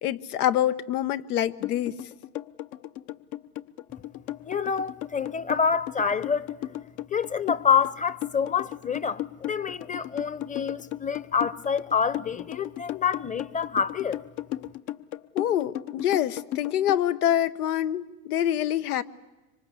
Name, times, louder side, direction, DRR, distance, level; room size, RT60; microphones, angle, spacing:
voice 1, 0.0-2.0 15.3-19.0, left 11 dB, 85° left, 1.2 m, -26 dB
sound 1, 1.6-17.0, left 14 dB, 55° left, 1.1 m, -35 dB
voice 2, 4.4-6.5 7.1-14.2, left 6 dB, 15° left, 0.9 m, -27 dB
25.5 x 24.5 x 8.4 m
hypercardioid pair, 105°, 45 cm